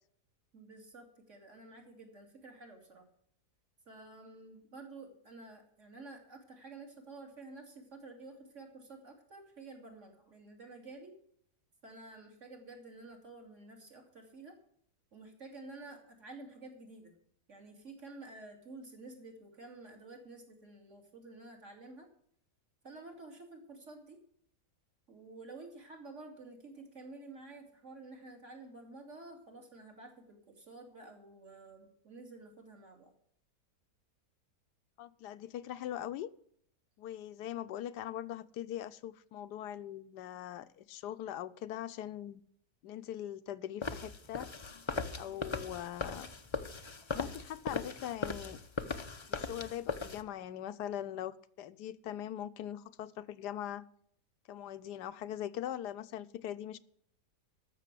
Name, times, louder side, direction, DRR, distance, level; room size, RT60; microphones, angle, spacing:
voice 1, 0.5-3.0 3.9-11.1 11.8-14.5 15.1-17.1 17.5-22.1 22.8-24.2 25.1-33.1, right 3 dB, 45° right, 2 dB, 2.9 m, -51 dB
voice 2, 35.0-36.3 37.0-42.4 42.8-44.5 45.1-46.3 47.1-48.6 49.3-53.8 54.5-56.8, left 11 dB, 80° left, 14 dB, 1.2 m, -41 dB
sound 1, 43.8-50.2, left 4 dB, 40° left, 0.4 m, -39 dB
13.5 x 6.7 x 7.5 m, 0.67 s
omnidirectional pair, 1.8 m